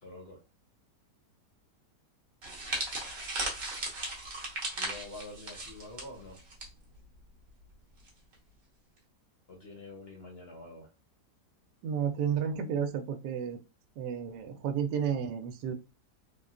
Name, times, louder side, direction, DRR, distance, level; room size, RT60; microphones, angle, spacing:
voice 1, 0.0-0.4 4.8-6.4 9.5-10.9, left 2 dB, 55° left, 0 dB, 0.7 m, -46 dB
sound 1, 2.4-6.7 6.9-7.2 8.1-8.3, right 2 dB, 45° right, 0.6 m, -37 dB
voice 2, 11.8-13.6 14.0-15.7, right 7 dB, 80° right, 6 dB, 1.1 m, -32 dB
3.5 x 2.2 x 2.4 m, 0.30 s
omnidirectional pair, 1.8 m